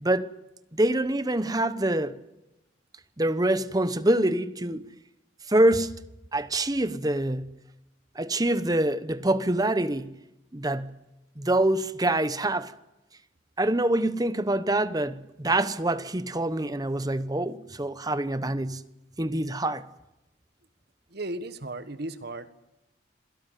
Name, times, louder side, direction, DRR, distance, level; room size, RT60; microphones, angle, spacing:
voice 1, 0.7-2.2 3.2-4.9 5.5-6.0 6.3-7.5 8.2-10.1 10.5-11.0 11.4-12.7 13.6-18.8 19.2-19.8, right 1 dB, 20° right, 0.9 m, -25 dB
voice 2, 21.1-22.5, right 2 dB, 50° right, 1.4 m, -35 dB
26.5 x 17.5 x 9.2 m
head